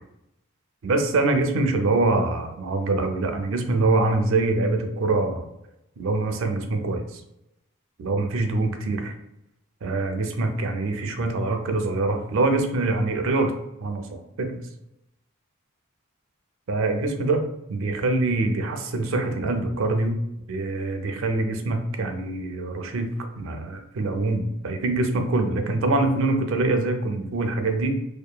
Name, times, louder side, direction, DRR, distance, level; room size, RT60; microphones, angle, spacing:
voice 1, 0.8-5.4 6.0-7.2 8.0-9.1 9.8-13.5 13.8-14.6 16.7-17.4 17.7-20.2 20.5-23.1 23.4-27.9, right 2 dB, 65° right, 5 dB, 0.4 m, -24 dB
2.8 x 2.2 x 2.2 m, 0.86 s
head